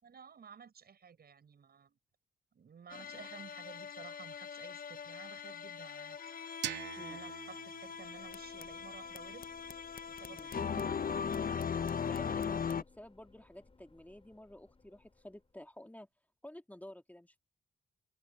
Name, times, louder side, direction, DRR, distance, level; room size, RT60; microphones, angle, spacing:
voice 1, 0.0-2.0 2.5-6.3 7.0-9.5 10.1-11.3, right 6 dB, 60° right, 7.1 m, -54 dB
sound 1, 2.9-12.8, left 7 dB, 55° left, 1.0 m, -39 dB
sound 2, 6.6-9.5, right 13 dB, 90° right, 1.2 m, -45 dB
sound 3, 7.8-15.7, left 3 dB, 30° left, 5.7 m, -64 dB
voice 2, 12.1-16.1 16.4-17.4, left 1 dB, 10° left, 2.5 m, -51 dB
supercardioid pair, 45°, 18 cm